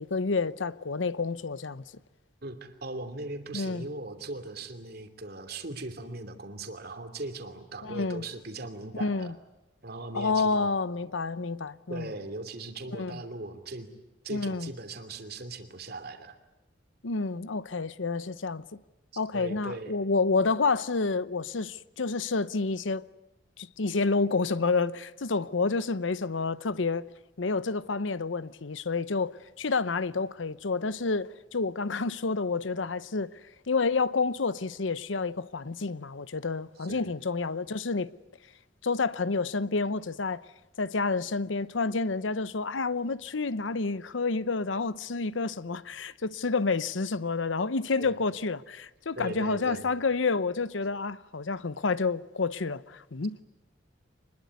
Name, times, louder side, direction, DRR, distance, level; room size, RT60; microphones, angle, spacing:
voice 1, 0.0-1.9 3.5-3.9 7.8-8.2 8.9-9.3 10.1-12.1 12.9-13.2 14.3-14.7 17.0-18.6 19.2-23.1 23.6-27.1 27.4-33.3 33.7-38.1 38.8-40.4 40.8-53.4, left 4 dB, 85° left, 0.8 m, -29 dB
voice 2, 2.4-9.3 9.8-10.7 11.9-13.9 14.2-16.4 19.1-19.9 36.9-37.1 48.0-48.2 49.1-49.9, right 2 dB, 55° right, 2.8 m, -39 dB
25.0 x 21.0 x 9.5 m
head